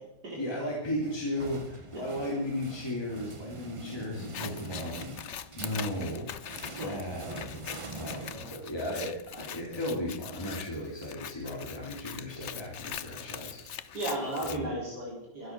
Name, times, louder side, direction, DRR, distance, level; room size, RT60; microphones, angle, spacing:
voice 1, 0.3-6.3 6.6-7.7 7.9-14.0 14.5-14.7, left 1 dB, 15° left, -3 dB, 3.1 m, -35 dB
sound 1, 1.0-8.9, right 3 dB, 35° right, 0.5 m, -45 dB
Scissors, 4.2-14.6, left 9 dB, 55° left, 0.8 m, -42 dB
voice 2, 13.9-15.5, right 1 dB, 65° right, -4 dB, 4.9 m, -35 dB
23.5 x 9.3 x 6.1 m, 0.90 s
omnidirectional pair, 1.9 m